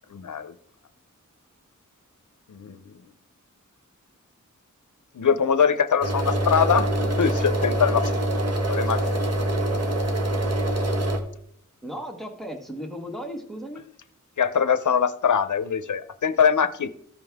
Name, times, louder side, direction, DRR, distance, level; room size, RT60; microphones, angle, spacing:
voice 1, 0.1-0.5 2.5-2.8 5.2-8.1 8.7-9.0 14.4-16.9, left 7 dB, 70° left, 13 dB, 0.6 m, -22 dB
sound 1, 6.0-11.2, right 1 dB, 50° right, 1.2 m, -24 dB
voice 2, 11.8-13.8, equal, ahead, 3 dB, 1.4 m, -35 dB
14.5 x 5.3 x 3.5 m, 0.66 s
wide cardioid pair, 80°, 31 cm